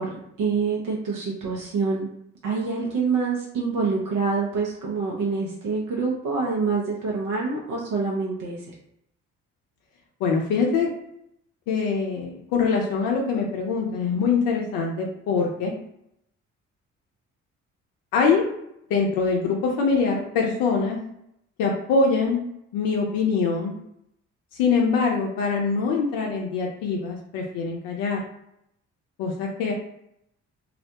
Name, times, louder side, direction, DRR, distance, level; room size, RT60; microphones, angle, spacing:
voice 1, 0.0-2.1 2.4-8.7, right 4 dB, 65° right, -3 dB, 0.7 m, -26 dB
voice 2, 10.2-10.9 11.7-15.7 18.1-18.4 18.9-21.0 21.6-22.4 22.7-23.8 24.6-28.2 29.2-29.7, left 5 dB, 75° left, -1 dB, 0.6 m, -23 dB
2.4 x 2.1 x 2.7 m, 0.77 s
hypercardioid pair, 50°, 35 cm